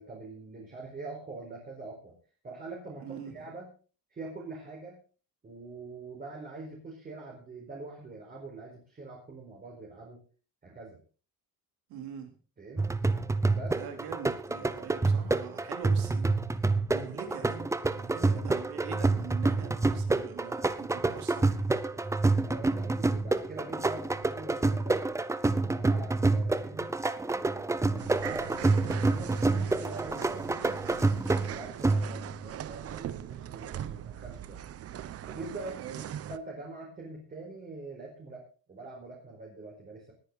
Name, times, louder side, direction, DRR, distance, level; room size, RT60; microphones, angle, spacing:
voice 1, 0.0-2.1 2.4-3.7 4.1-5.0 5.4-10.2 10.6-11.0 12.6-12.9 13.5-13.8 18.2-18.4 22.4-25.0 25.6-34.6 35.3-35.8 36.3-40.1, right 3 dB, 25° right, -2 dB, 4.7 m, -44 dB
voice 2, 3.0-3.5 11.9-12.4 13.8-16.3 16.6-21.7 26.7-26.8 35.8-36.1, right 8 dB, 85° right, 5 dB, 3.6 m, -43 dB
sound 1, 12.8-32.4, right 3 dB, 10° right, 0.7 m, -28 dB
sound 2, 28.0-36.4, right 11 dB, 40° right, 0.8 m, -41 dB
20.0 x 9.8 x 4.1 m, 0.37 s
cardioid pair, 145°, 36 cm